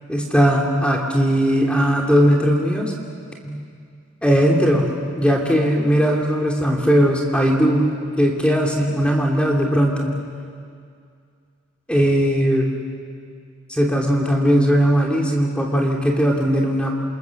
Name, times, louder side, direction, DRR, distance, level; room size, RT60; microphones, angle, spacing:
voice 1, 0.1-2.9 3.4-3.6 4.2-4.9 5.2-10.2 11.9-12.7 13.7-17.0, equal, 5° left, -1 dB, 2.7 m, -18 dB
28.0 x 26.5 x 7.1 m, 2.2 s
head